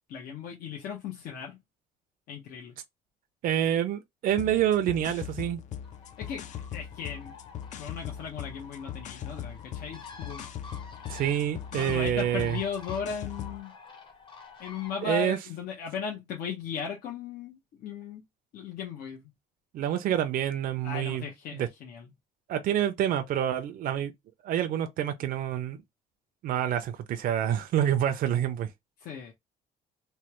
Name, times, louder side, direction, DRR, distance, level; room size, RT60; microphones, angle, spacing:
voice 1, 0.1-1.6 2.3-2.8 6.2-7.3 7.7-10.5 11.7-13.7 14.6-18.2 18.5-19.2 20.8-22.1 29.0-29.3, left 6 dB, 70° left, 0.8 m, -37 dB
voice 2, 3.4-5.6 11.1-12.6 15.0-15.4 19.7-21.2 21.5-21.7 22.5-24.1 24.4-25.8 26.4-28.7, right 10 dB, 60° right, 0.5 m, -27 dB
sound 1, 4.3-13.6, left 9 dB, 50° left, 0.4 m, -40 dB
Bird, 5.8-15.1, left 4 dB, 30° left, 0.8 m, -49 dB
3.2 x 2.2 x 2.9 m
cardioid pair, 135°, 16 cm